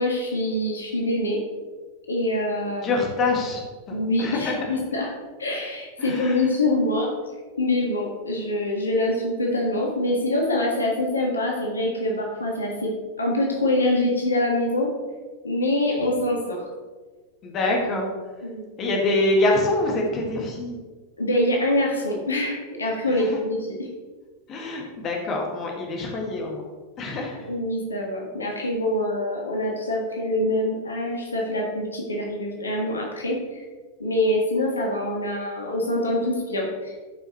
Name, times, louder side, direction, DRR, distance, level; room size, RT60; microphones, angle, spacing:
voice 1, 0.0-1.4 2.1-3.0 3.9-5.1 5.4-7.1 7.6-14.9 15.4-16.7 17.6-17.7 18.4-18.7 21.2-23.9 26.2-26.3 27.5-33.6 34.0-37.0, left 1 dB, 75° left, 0 dB, 1.5 m, -25 dB
voice 2, 2.8-3.6 3.9-4.5 6.0-6.5 17.4-18.1 18.8-20.8 23.1-23.4 24.5-26.6 27.0-27.5, left 2 dB, 30° left, 0 dB, 1.8 m, -25 dB
13.5 x 5.6 x 3.0 m, 1.4 s
figure-of-eight pair, 90°, 0 cm